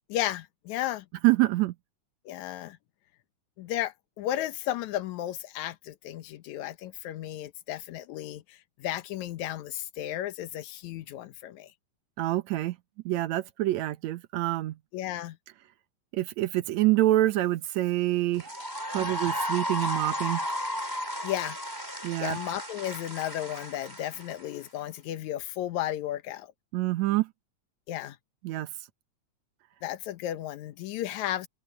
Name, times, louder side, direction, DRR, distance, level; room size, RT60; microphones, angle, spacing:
voice 1, 0.1-1.1 2.3-2.8 3.6-11.7 14.9-15.4 18.9-19.0 21.2-21.6 22.2-26.5 27.9-28.2 29.8-31.5, left 13 dB, 75° left, 2.3 m, -34 dB
voice 2, 1.2-1.7 12.2-12.8 13.1-14.8 16.1-18.5 18.9-20.4 22.0-22.4 26.7-27.3 28.4-28.7, right 16 dB, 75° right, 2.2 m, -26 dB
sound 1, 18.3-24.7, equal, 5° right, 5.5 m, -34 dB
open air
omnidirectional pair, 3.4 m